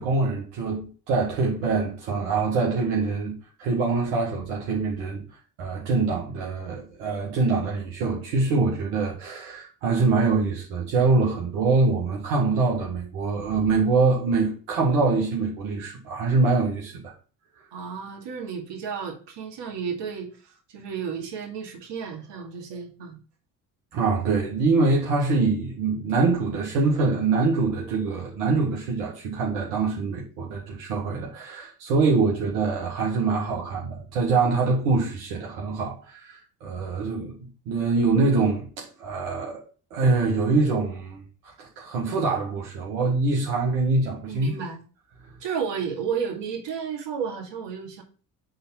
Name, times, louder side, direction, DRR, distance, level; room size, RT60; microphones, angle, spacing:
voice 1, 0.0-3.3 3.6-5.2 5.6-16.9 23.9-37.4 37.7-39.6 39.9-44.5, right 3 dB, 80° right, 1.9 m, -24 dB
voice 2, 17.7-23.2 44.3-44.8 45.4-48.0, right 6 dB, 60° right, 2.3 m, -32 dB
6.7 x 4.0 x 5.5 m
hypercardioid pair, 55°, 47 cm